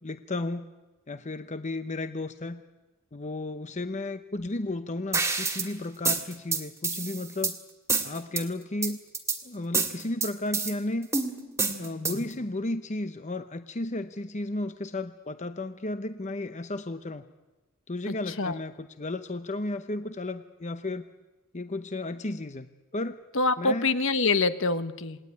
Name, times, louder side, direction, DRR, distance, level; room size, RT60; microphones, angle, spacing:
voice 1, 0.0-0.7 1.1-2.6 3.1-7.6 8.0-9.0 9.4-11.1 11.8-17.2 17.9-21.1 21.5-23.2 23.6-23.9, left 2 dB, 35° left, 10 dB, 0.9 m, -33 dB
sound 1, 5.1-5.7 6.1-7.5 7.9-8.4 8.8-9.4 9.7-10.7 11.1-12.3, right 4 dB, 15° right, 2.2 m, -28 dB
voice 2, 18.1-18.5 23.3-25.2, left 3 dB, 65° left, 11 dB, 1.4 m, -25 dB
28.0 x 20.0 x 9.7 m, 1.1 s
head